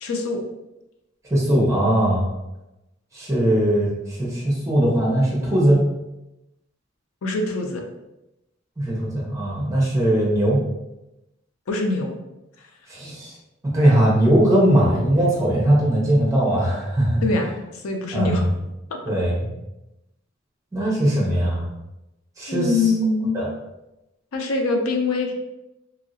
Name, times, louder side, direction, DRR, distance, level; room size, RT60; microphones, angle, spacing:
voice 1, 0.0-0.4 7.2-7.8 11.7-12.1 17.2-18.5 19.1-19.2 22.5-23.4 24.3-25.3, left 3 dB, 85° left, 4 dB, 0.5 m, -24 dB
voice 2, 1.3-2.3 3.1-3.9 4.2-5.8 8.8-10.6 12.9-13.3 13.7-17.2 18.1-18.5 19.1-19.5 20.7-21.6 22.4-22.7 23.3-23.5, right 1 dB, 15° right, -5 dB, 0.8 m, -19 dB
3.0 x 2.7 x 2.7 m, 0.94 s
head